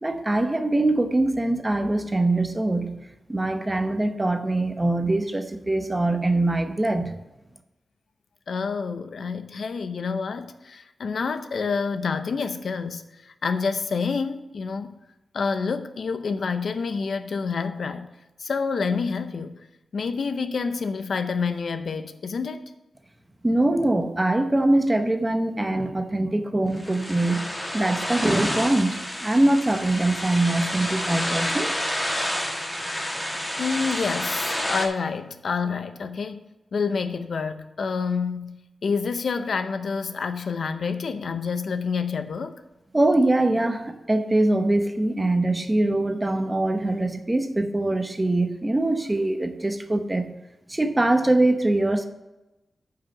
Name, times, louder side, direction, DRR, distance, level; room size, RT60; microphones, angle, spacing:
voice 1, 0.0-2.9 3.3-7.1 23.4-27.4 27.7-31.7 42.9-50.3 50.7-52.1, right 2 dB, 15° right, 0.8 m, -23 dB
voice 2, 8.5-15.0 15.3-18.1 18.4-19.6 19.9-22.6 33.6-36.4 36.7-42.6, left 5 dB, 70° left, 0.6 m, -28 dB
sound 1, 26.7-34.9, equal, 10° left, 1.4 m, -29 dB
9.2 x 5.7 x 5.7 m
wide cardioid pair, 135°, 0 cm